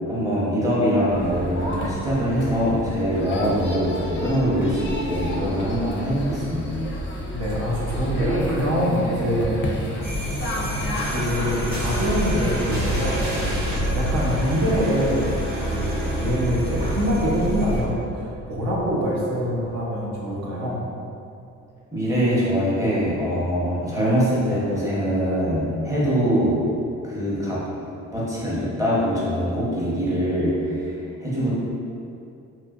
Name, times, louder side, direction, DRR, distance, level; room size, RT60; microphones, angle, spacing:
voice 1, 0.1-6.8 21.9-26.7 27.0-27.6 28.1-31.5, equal, 10° right, -8 dB, 0.8 m, -23 dB
sound 1, 1.1-11.1, equal, 40° left, 0.4 m, -31 dB
voice 2, 7.3-9.6 10.4-10.7 11.1-15.2 15.7-20.8, equal, 60° right, -5 dB, 0.7 m, -25 dB
sound 2, 10.0-17.8, left 1 dB, 30° right, 1.0 m, -31 dB
sound 3, 10.9-19.1 19.5-19.7, right 1 dB, 90° right, 1.1 m, -28 dB
2.7 x 2.4 x 2.3 m, 2.6 s
cardioid pair, 90°, 30 cm